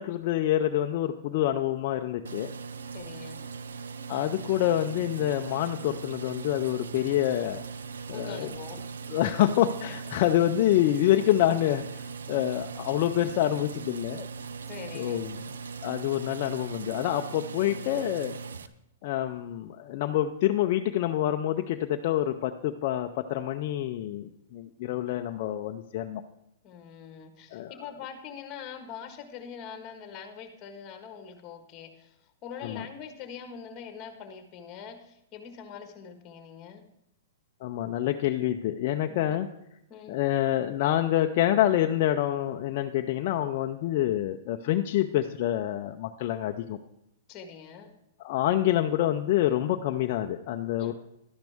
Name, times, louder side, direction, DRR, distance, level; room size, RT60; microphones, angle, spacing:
voice 1, 0.0-2.5 4.1-7.6 8.1-8.5 9.1-14.3 14.9-15.5 15.8-18.4 19.0-26.2 27.5-27.7 32.6-32.8 37.6-39.5 40.1-46.8 48.2-50.9, left 12 dB, 50° left, 5 dB, 0.6 m, -27 dB
sound 1, 2.3-18.7, right 5 dB, 90° right, 0.6 m, -40 dB
voice 2, 2.9-3.4 8.1-8.9 14.6-15.2 18.4-18.6 26.6-32.2 32.4-36.9 39.1-39.4 39.9-40.2 47.3-47.9 50.8-50.9, left 7 dB, 30° left, 6 dB, 1.6 m, -43 dB
12.0 x 10.5 x 3.6 m, 0.80 s
hypercardioid pair, 135°, 0 cm